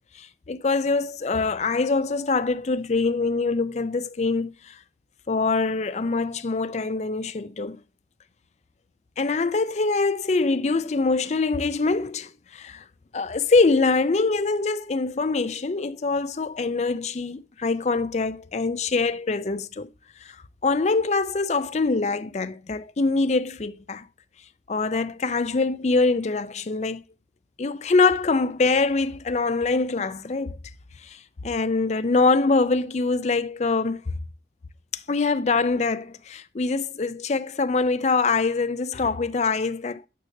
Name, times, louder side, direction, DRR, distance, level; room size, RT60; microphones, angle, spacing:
voice 1, 0.1-4.8 5.3-7.8 9.2-12.8 13.1-19.9 20.2-20.4 20.6-24.1 24.7-27.0 27.6-30.6 31.0-34.2 34.9-40.0, left 3 dB, 40° left, 0.5 m, -24 dB
9.3 x 6.5 x 2.7 m
head